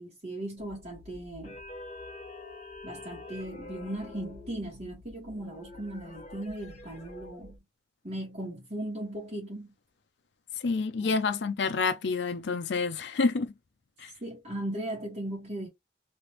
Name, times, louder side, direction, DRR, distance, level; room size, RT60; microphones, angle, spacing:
voice 1, 0.0-1.6 2.8-7.6 8.0-9.7 11.0-11.1 14.2-15.7, right 1 dB, 40° right, 1.6 m, -37 dB
sound 1, 0.6-7.6, left 2 dB, 35° left, 1.2 m, -46 dB
voice 2, 10.6-13.5 14.0-14.1, left 4 dB, 65° left, 0.5 m, -28 dB
3.3 x 2.9 x 3.0 m
head